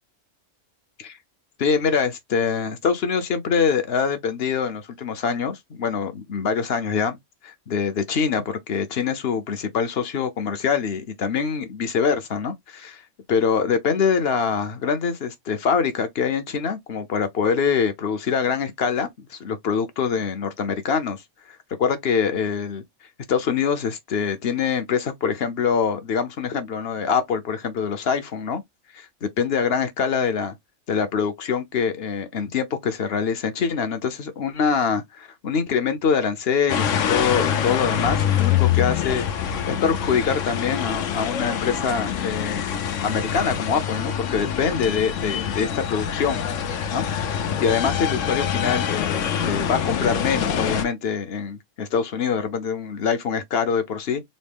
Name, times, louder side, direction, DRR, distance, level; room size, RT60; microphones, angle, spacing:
voice 1, 1.6-7.2 7.4-13.0 13.3-21.2 21.8-22.8 23.3-28.6 28.9-30.5 30.9-42.6 43.0-46.4 46.9-47.0 47.6-49.2 49.4-54.2, left 6 dB, 55° left, 0.9 m, -24 dB
sound 1, 36.7-50.8, left 8 dB, 75° left, 1.1 m, -25 dB
4.1 x 2.0 x 3.4 m
omnidirectional pair, 1.3 m